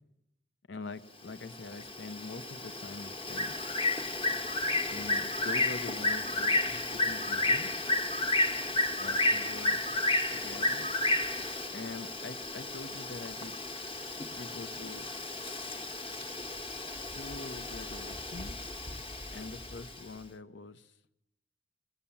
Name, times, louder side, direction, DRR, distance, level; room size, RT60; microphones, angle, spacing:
voice 1, 0.7-3.6 4.9-7.7 9.0-9.8 10.3-10.9 11.7-13.5 14.3-15.1 17.1-18.6 19.3-20.9, left 3 dB, 70° left, 10 dB, 0.9 m, -44 dB
Bird, 1.3-20.0, left 2 dB, 30° left, 1.2 m, -32 dB
20.0 x 18.0 x 7.2 m, 0.81 s
head